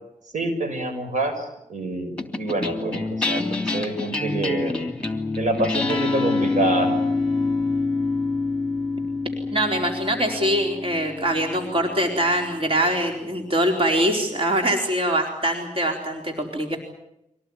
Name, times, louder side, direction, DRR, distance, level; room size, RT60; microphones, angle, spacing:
voice 1, 0.3-4.7 5.4-7.0, right 2 dB, 70° right, 6 dB, 6.3 m, -26 dB
sound 1, 2.2-12.8, left 3 dB, 10° left, 3.2 m, -26 dB
voice 2, 9.5-16.8, right 1 dB, 45° right, 3 dB, 4.1 m, -23 dB
25.0 x 18.5 x 9.5 m, 0.84 s
cardioid pair, 60°, 13 cm